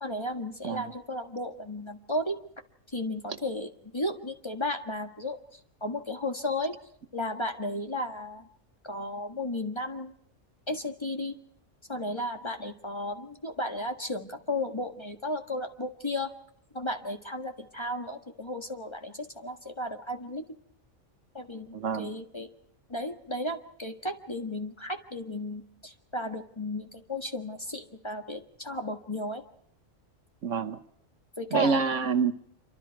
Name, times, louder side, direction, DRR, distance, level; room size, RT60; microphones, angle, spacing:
voice 1, 0.0-2.4 2.9-6.7 7.1-8.5 8.8-10.1 10.7-11.4 11.9-16.3 16.7-20.4 21.3-22.5 22.9-29.4 31.4-31.8, left 1 dB, 20° left, 4 dB, 1.6 m, -34 dB
voice 2, 21.7-22.1 30.4-30.8 31.5-32.3, right 5 dB, 70° right, 11 dB, 1.4 m, -26 dB
27.0 x 24.5 x 4.7 m, 0.67 s
omnidirectional pair, 1.4 m